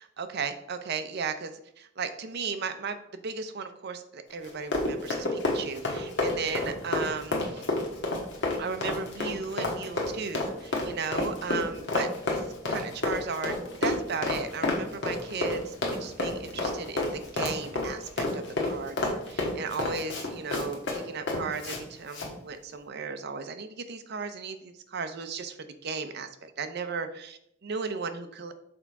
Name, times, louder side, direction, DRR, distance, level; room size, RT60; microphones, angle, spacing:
voice 1, 0.0-1.5 1.8-3.0 3.2-7.6 8.6-12.1 12.7-13.5 13.8-15.7 16.0-25.6 25.8-28.5, right 5 dB, 55° right, 8 dB, 0.6 m, -35 dB
Run, 4.4-21.8 22.1-22.3, left 2 dB, 65° left, 1.4 m, -30 dB
6.2 x 3.6 x 4.6 m, 0.73 s
head